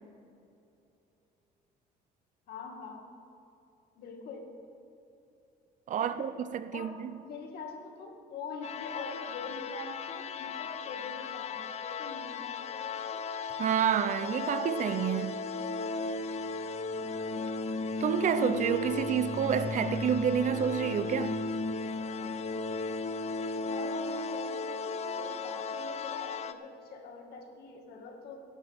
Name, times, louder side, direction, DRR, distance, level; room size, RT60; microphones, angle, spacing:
voice 1, 2.5-3.1 4.0-4.5 6.0-6.3 6.7-7.0 7.2-13.2 23.7-28.4, left 4 dB, 70° left, 2.1 m, -44 dB
voice 2, 5.9-7.1 13.6-15.4 18.0-21.4, right 8 dB, 50° right, 0.6 m, -29 dB
sound 1, 8.6-26.5, left 4 dB, 40° left, 0.7 m, -35 dB
21.0 x 11.0 x 3.6 m
cardioid pair, 110°, 17 cm